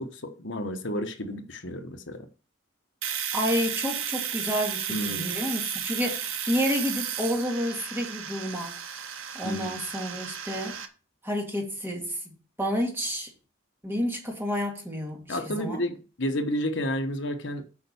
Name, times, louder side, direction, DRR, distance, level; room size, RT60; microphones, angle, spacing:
voice 1, 0.0-2.2 4.9-5.3 9.4-9.8 15.3-17.6, equal, 65° left, 1.1 m, -31 dB
Domestic sounds home sounds, 3.0-10.9, right 9 dB, 85° right, 1.3 m, -33 dB
voice 2, 3.3-8.8 9.3-10.8 11.2-12.2 12.6-13.3 13.8-15.8, equal, 10° right, 2.4 m, -30 dB
8.6 x 5.4 x 6.9 m
head